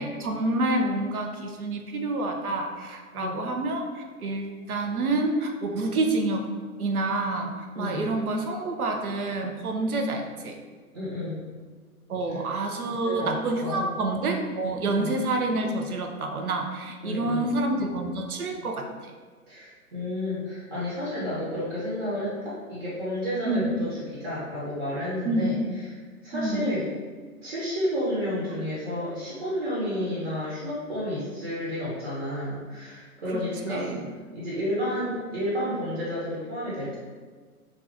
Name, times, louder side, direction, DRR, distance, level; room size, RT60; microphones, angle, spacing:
voice 1, 0.0-6.4 6.8-10.6 12.1-19.1 23.4-23.7 25.3-25.6 26.3-26.7 33.3-34.1, right 2 dB, 75° right, 3 dB, 0.6 m, -28 dB
voice 2, 3.1-3.5 7.7-8.1 10.9-11.4 12.3-12.4 13.0-14.0 14.8-15.1 17.0-17.5 19.5-25.9 26.2-26.9 27.4-33.9 34.3-37.0, left 1 dB, 45° right, -8 dB, 1.0 m, -31 dB
2.5 x 2.5 x 3.3 m, 1.5 s
figure-of-eight pair, 130°, 44 cm